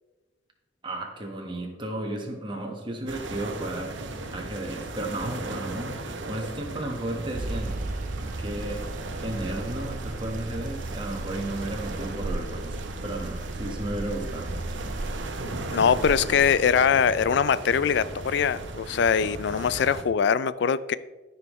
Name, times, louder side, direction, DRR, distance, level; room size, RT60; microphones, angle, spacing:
voice 1, 0.8-3.9 4.3-7.8 8.4-8.8 9.2-14.6, right 1 dB, 25° right, 1 dB, 1.4 m, -34 dB
sound 1, 3.1-20.0, right 2 dB, 75° right, 0.9 m, -37 dB
sound 2, 7.3-16.6, right 2 dB, 45° right, 0.5 m, -35 dB
voice 2, 15.7-21.0, left 7 dB, 65° left, 17 dB, 0.3 m, -22 dB
13.5 x 5.6 x 3.1 m, 1.2 s
head